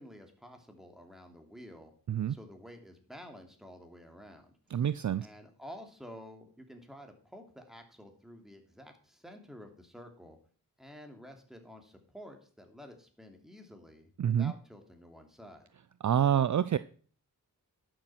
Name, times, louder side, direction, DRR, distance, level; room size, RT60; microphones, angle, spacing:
voice 1, 0.0-1.9 2.3-4.9 5.2-10.4 10.8-15.7, equal, ahead, 4 dB, 2.9 m, -51 dB
voice 2, 4.7-5.3 14.2-14.5 16.0-16.8, right 9 dB, 50° right, 15 dB, 0.5 m, -27 dB
11.5 x 6.9 x 5.9 m, 0.43 s
cardioid pair, 50°, 37 cm